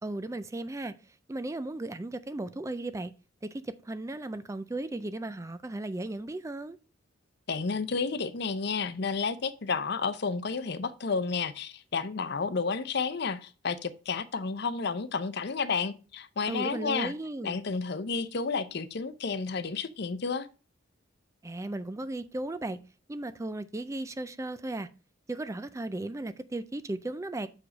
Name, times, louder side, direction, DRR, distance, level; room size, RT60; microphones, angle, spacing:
voice 1, 0.0-3.1 3.4-6.8 16.5-17.6 21.4-22.8 23.1-24.9 25.3-27.5, right 2 dB, 15° right, 0.4 m, -36 dB
voice 2, 7.5-17.1 17.4-20.5, left 5 dB, 55° left, 0.6 m, -31 dB
6.2 x 4.9 x 5.1 m
head